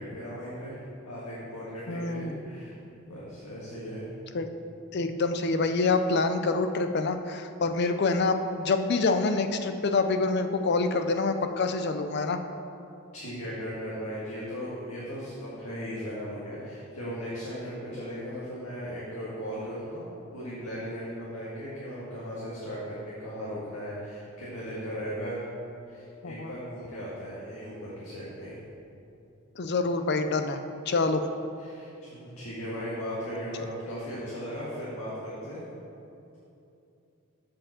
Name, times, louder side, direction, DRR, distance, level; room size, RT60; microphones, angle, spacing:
voice 1, 0.0-2.7 3.1-4.1 13.1-25.5 25.9-28.6 31.6-35.6, equal, 85° left, -8 dB, 1.7 m, -37 dB
voice 2, 1.9-2.4 4.3-4.5 4.9-12.4 26.2-26.5 29.6-30.6 30.9-31.3, left 3 dB, 50° left, 8 dB, 0.4 m, -26 dB
7.3 x 5.0 x 7.2 m, 2.7 s
head